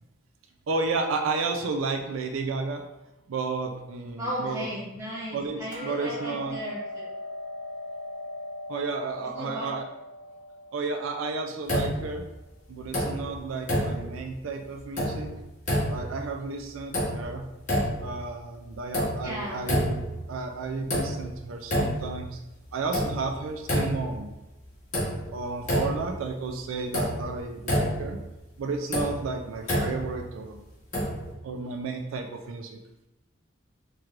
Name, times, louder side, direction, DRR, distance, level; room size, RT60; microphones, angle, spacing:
voice 1, 0.7-2.8 3.3-4.7 5.3-6.6 8.7-9.9 10.7-12.2 12.7-15.3 15.9-17.5 18.0-22.4 22.7-24.4 25.3-28.2 28.6-30.6 31.4-32.8, right 4 dB, 85° right, 4 dB, 0.4 m, -32 dB
voice 2, 4.2-7.1 9.3-9.7 19.2-19.6, equal, 15° right, -7 dB, 0.7 m, -35 dB
Hammer, 5.7-11.9, left 1 dB, 65° right, 1.0 m, -40 dB
sound 1, 11.7-12.4 12.8-13.4 13.7-14.3 14.7-15.3 15.6-16.3 16.7-17.4 17.7-18.2 18.7-19.4 19.6-20.3 20.6-21.4 21.6-22.3 22.6-24.2 24.6-24.7 24.9-26.2 26.5-26.6 26.9-28.2 28.7-30.2 30.9-31.3, equal, 40° left, 1.1 m, -28 dB
4.5 x 3.1 x 2.5 m, 0.96 s
head